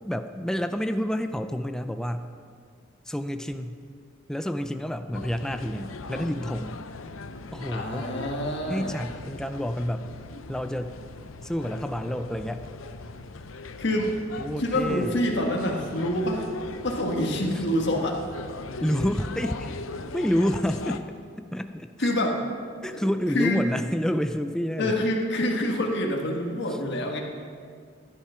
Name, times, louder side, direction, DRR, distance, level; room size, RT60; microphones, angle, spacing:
voice 1, 0.0-2.3 3.1-3.8 4.3-6.8 7.5-8.1 8.7-10.1 10.5-11.0 11.4-12.7 14.4-15.2 17.5-17.6 18.8-19.7 20.1-21.0 21.5-21.9 22.8-25.0, equal, 5° left, 8 dB, 0.4 m, -29 dB
sound 1, 5.1-21.0, left 3 dB, 80° left, 0.7 m, -40 dB
voice 2, 7.7-8.9 10.3-10.4 12.0-12.1 13.8-14.1 14.6-16.5 16.8-18.2 22.0-22.4 22.9-23.1 23.3-23.6 24.8-27.2, left 1 dB, 60° left, 0 dB, 1.6 m, -26 dB
15.0 x 10.5 x 5.7 m, 2.2 s
head